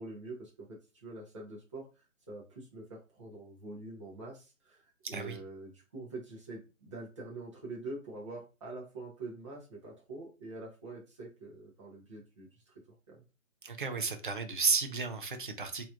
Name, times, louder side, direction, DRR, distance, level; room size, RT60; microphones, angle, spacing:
voice 1, 0.0-13.2, right 2 dB, 20° right, 1.0 m, -45 dB
voice 2, 13.6-15.9, right 5 dB, 40° right, 0.5 m, -32 dB
3.9 x 3.0 x 2.4 m
hypercardioid pair, 170°, 40 cm